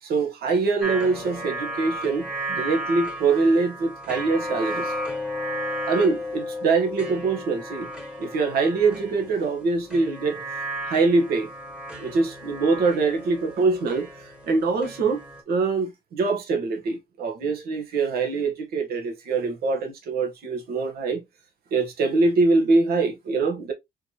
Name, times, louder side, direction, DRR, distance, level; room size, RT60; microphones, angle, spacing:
voice 1, 0.0-4.9 5.9-7.9 8.2-10.4 10.9-11.5 12.0-14.1 14.5-21.2 21.7-23.7, right 3 dB, 65° right, 1.2 m, -24 dB
sound 1, 0.8-15.4, equal, 5° right, 1.2 m, -34 dB
4.2 x 2.9 x 3.0 m
cardioid pair, 110°, 17 cm